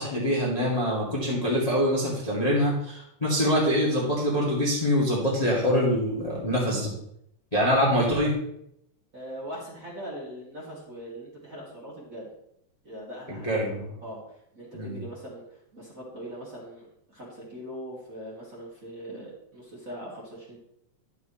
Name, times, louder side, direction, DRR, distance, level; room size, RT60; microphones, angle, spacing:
voice 1, 0.0-6.9 7.5-8.3 13.3-13.9 14.7-15.0, equal, 15° left, -5 dB, 1.6 m, -25 dB
voice 2, 9.1-12.3 12.8-13.7 14.0-14.2 14.5-15.4 15.7-20.6, equal, 30° right, -6 dB, 2.3 m, -41 dB
11.0 x 7.8 x 3.1 m, 0.75 s
omnidirectional pair, 3.7 m